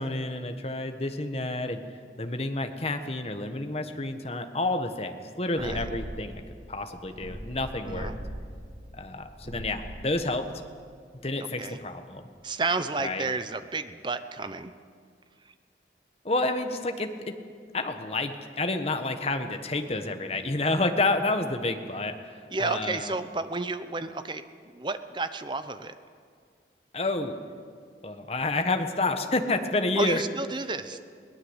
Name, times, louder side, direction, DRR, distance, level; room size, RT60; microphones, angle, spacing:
voice 1, 0.0-1.8 2.2-6.4 6.7-8.1 8.9-10.4 11.2-12.3 13.0-13.3 16.2-17.3 17.7-23.1 26.9-27.4 28.0-30.2, left 2 dB, 35° left, 7 dB, 1.4 m, -29 dB
sound 1, 5.6-11.0, equal, 70° right, 7.2 m, -40 dB
voice 2, 11.4-11.8 12.4-14.7 22.5-26.0 30.0-31.0, right 3 dB, 25° right, 11 dB, 0.8 m, -32 dB
22.0 x 18.5 x 8.1 m, 2.1 s
head